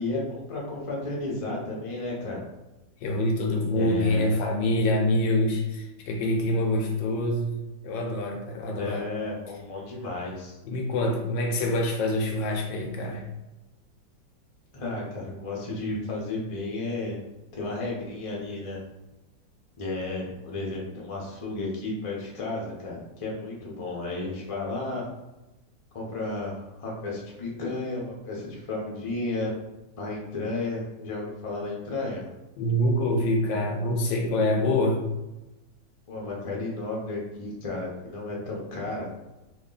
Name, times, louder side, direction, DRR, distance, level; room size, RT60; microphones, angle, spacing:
voice 1, 0.0-2.4 3.7-4.3 8.7-10.6 14.7-17.2 17.6-18.8 19.8-25.0 25.9-29.5 30.0-32.3 36.1-39.3, left 2 dB, 35° left, -3 dB, 0.5 m, -33 dB
voice 2, 3.0-7.6 7.8-9.1 10.6-13.2 32.6-35.1, left 1 dB, 85° left, 1 dB, 1.4 m, -25 dB
3.5 x 2.3 x 3.8 m, 1.0 s
omnidirectional pair, 2.0 m